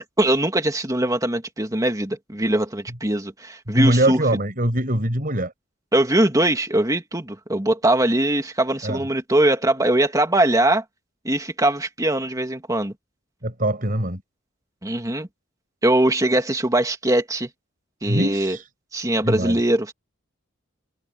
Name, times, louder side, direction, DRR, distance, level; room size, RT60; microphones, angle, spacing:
voice 1, 0.2-4.2 5.9-10.8 11.2-12.9 14.8-15.3 15.8-17.5 18.0-18.6 18.9-19.9, right 1 dB, 20° right, 2.5 m, -21 dB
voice 2, 3.7-5.5 8.8-9.0 13.4-14.2 18.1-18.7 19.3-19.6, right 1 dB, 45° right, 6.5 m, -22 dB
head